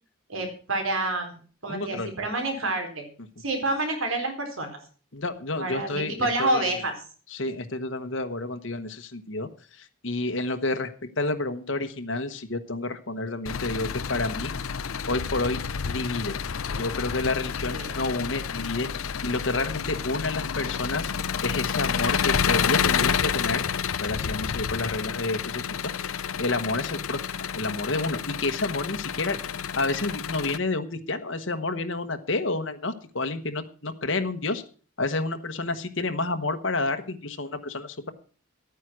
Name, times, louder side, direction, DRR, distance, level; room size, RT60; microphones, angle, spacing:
voice 1, 0.3-3.1 3.4-4.7 5.5-6.9 16.7-16.8 17.6-18.0, right 2 dB, 85° right, 4 dB, 4.1 m, -28 dB
voice 2, 1.7-2.1 5.1-6.8 7.3-10.9 11.2-14.5 15.1-15.6 15.9-16.4 16.8-21.1 21.4-23.6 24.0-27.3 27.6-29.4 29.8-34.6 35.0-38.1, left 2 dB, 70° left, 7 dB, 1.2 m, -29 dB
Engine, 13.5-30.6, left 7 dB, 90° left, 0.6 m, -29 dB
13.0 x 9.5 x 6.1 m, 0.40 s
head